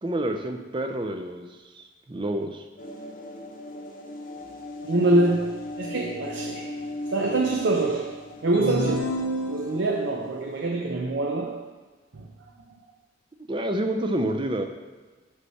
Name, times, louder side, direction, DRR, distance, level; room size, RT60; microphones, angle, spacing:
voice 1, 0.0-2.7 13.5-14.6, right 1 dB, 25° right, 5 dB, 0.5 m, -28 dB
sound 1, 2.8-10.7, left 1 dB, 45° left, 0.8 m, -39 dB
voice 2, 4.8-6.8 7.1-11.6 12.1-12.3, right 2 dB, 70° right, 1 dB, 0.6 m, -25 dB
sound 2, 8.5-10.1, equal, 90° left, 1.0 m, -29 dB
8.2 x 3.2 x 5.5 m, 1.3 s
head